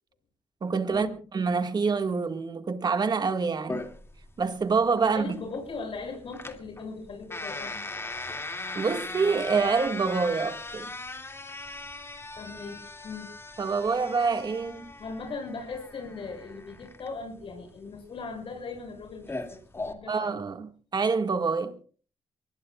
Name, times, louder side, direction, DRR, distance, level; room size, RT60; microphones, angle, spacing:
voice 1, 0.6-1.1 1.3-3.8 4.4-5.3 8.8-10.9 13.6-14.9 20.1-21.8, right 4 dB, 40° right, 1.9 m, -26 dB
sound 1, 3.7-19.9, left 2 dB, 25° left, 2.4 m, -39 dB
voice 2, 5.1-7.8 12.4-13.3 15.0-20.4, left 4 dB, 55° left, 7.2 m, -39 dB
24.0 x 20.5 x 2.4 m
cardioid pair, 85°, 11 cm